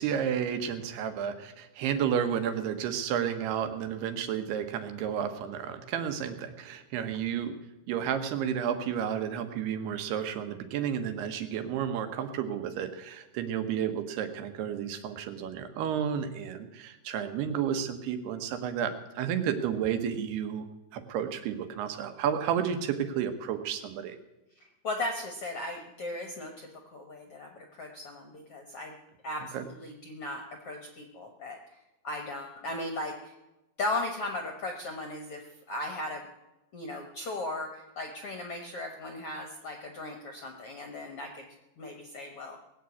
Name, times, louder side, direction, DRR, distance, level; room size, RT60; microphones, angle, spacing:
voice 1, 0.0-7.6 7.9-20.7 20.9-24.2 29.5-29.6, right 8 dB, 85° right, 8 dB, 3.2 m, -31 dB
voice 2, 24.8-28.9 29.2-31.6 32.0-33.3 33.8-36.3 36.7-41.5 41.8-42.6, left 2 dB, 65° left, 4 dB, 1.4 m, -37 dB
19.0 x 7.8 x 8.3 m, 1.0 s
omnidirectional pair, 4.5 m